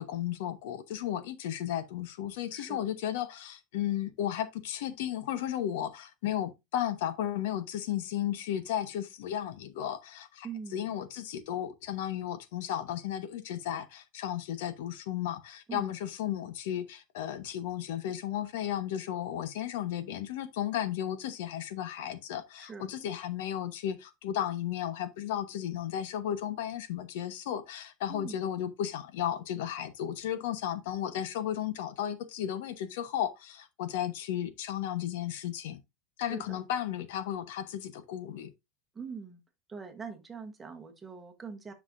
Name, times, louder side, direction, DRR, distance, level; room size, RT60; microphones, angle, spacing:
voice 1, 0.0-10.5 10.7-35.8 36.2-38.5, left 11 dB, 75° left, 1.0 m, -34 dB
voice 2, 2.5-2.8 10.4-10.9 15.7-15.9 22.6-22.9 28.1-28.4 36.2-36.6 38.9-39.4 39.7-41.7, right 5 dB, 10° right, 1.2 m, -43 dB
9.9 x 5.8 x 2.6 m
cardioid pair, 180°, 0 cm